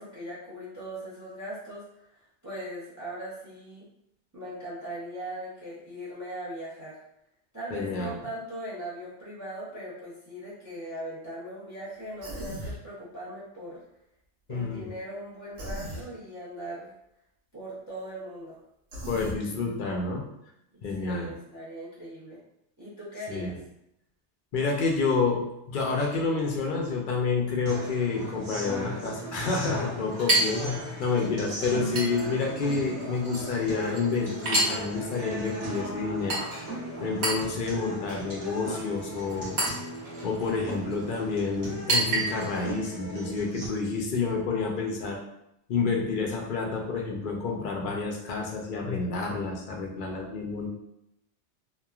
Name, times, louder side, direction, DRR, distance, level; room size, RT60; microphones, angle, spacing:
voice 1, 0.0-1.8 2.1-3.8 4.3-7.0 7.5-13.8 14.5-16.9 17.5-18.6 20.9-22.4 22.8-23.6 31.5-31.8, right 1 dB, 20° right, -8 dB, 0.6 m, -39 dB
voice 2, 7.7-8.2 14.5-14.9 19.1-20.2 20.8-21.3 23.3-23.5 24.5-36.4 37.0-39.6 40.2-45.2 45.7-50.7, left 4 dB, 55° left, 0 dB, 0.6 m, -29 dB
Human voice, 12.2-12.8 15.6-16.0 18.9-19.4, equal, 90° right, 1.1 m, -37 dB
sound 1, 27.7-43.7, right 1 dB, 45° right, 1.0 m, -38 dB
Chink clink, 27.8-42.7, right 1 dB, 65° right, 1.2 m, -33 dB
3.0 x 2.2 x 2.3 m, 0.82 s
omnidirectional pair, 1.2 m